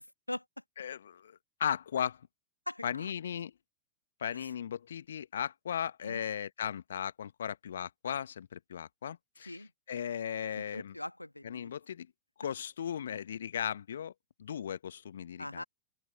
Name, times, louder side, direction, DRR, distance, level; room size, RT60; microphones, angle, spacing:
voice 1, 0.0-0.6 2.7-3.1 4.3-4.5 6.0-6.2 9.4-9.7 10.5-11.7 15.4-15.6, left 1 dB, 85° left, 1.5 m, -42 dB
voice 2, 0.8-2.3 2.8-3.5 4.2-9.6 9.9-10.9 11.4-12.1 12.4-14.1 14.4-15.6, left 9 dB, 65° left, 1.2 m, -37 dB
open air
figure-of-eight pair, 90°, 0 cm